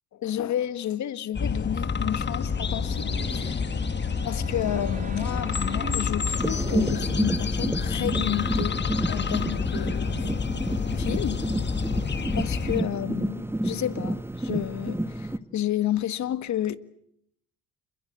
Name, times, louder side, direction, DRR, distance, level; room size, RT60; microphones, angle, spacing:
voice 1, 0.1-3.7 4.2-10.3 10.9-11.6 12.0-16.8, left 11 dB, 70° left, 1.8 m, -31 dB
sound 1, 1.3-12.8, left 5 dB, 35° left, 1.9 m, -28 dB
sound 2, 2.2-7.5, right 2 dB, 25° right, 6.2 m, -40 dB
sound 3, 6.4-15.4, right 1 dB, 10° right, 1.7 m, -30 dB
29.5 x 22.0 x 8.0 m
cardioid pair, 90°, 30 cm